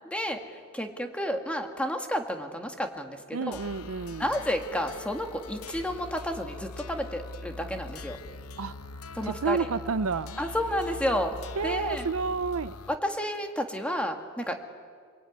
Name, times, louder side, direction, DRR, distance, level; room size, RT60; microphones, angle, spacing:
voice 1, 0.0-3.6 4.2-8.2 9.2-9.7 10.4-11.4 11.6-12.1 12.9-14.6, equal, 5° left, 4 dB, 2.0 m, -31 dB
voice 2, 3.3-4.3 8.6-8.7 9.2-10.4 11.6-12.8, right 4 dB, 70° right, 14 dB, 0.6 m, -30 dB
sound 1, 3.5-13.0, left 3 dB, 80° left, 0.8 m, -42 dB
26.5 x 22.0 x 9.5 m, 2.1 s
head